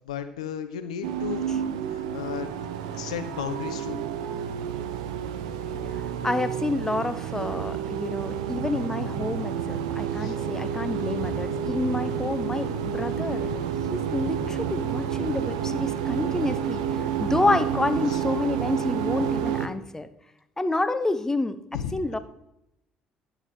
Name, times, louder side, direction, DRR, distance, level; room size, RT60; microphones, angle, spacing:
voice 1, 0.1-1.4 1.9-2.5 2.9-4.0 10.2-10.4 18.1-18.2 21.7-21.9, left 9 dB, 80° left, 10 dB, 0.6 m, -34 dB
sound 1, 1.0-19.7, right 8 dB, 75° right, 0.6 m, -29 dB
voice 2, 6.2-13.5 13.9-20.1 20.6-21.6 21.9-22.2, left 2 dB, 15° left, 12 dB, 0.8 m, -28 dB
10.5 x 7.2 x 3.4 m, 0.83 s
figure-of-eight pair, 55°, 4 cm